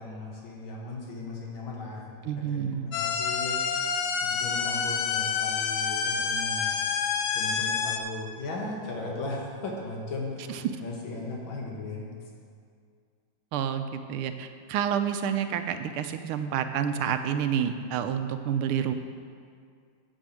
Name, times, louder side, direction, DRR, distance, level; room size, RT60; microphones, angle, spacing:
voice 1, 0.0-3.6 4.2-6.8 7.3-12.1, left 2 dB, 65° left, -2 dB, 2.5 m, -37 dB
voice 2, 2.2-2.9 10.5-10.6 13.5-18.9, right 8 dB, 90° right, 9 dB, 1.5 m, -29 dB
sound 1, 2.9-8.0, left 6 dB, 85° left, 1.7 m, -28 dB
8.8 x 7.2 x 7.6 m, 2.2 s
omnidirectional pair, 2.4 m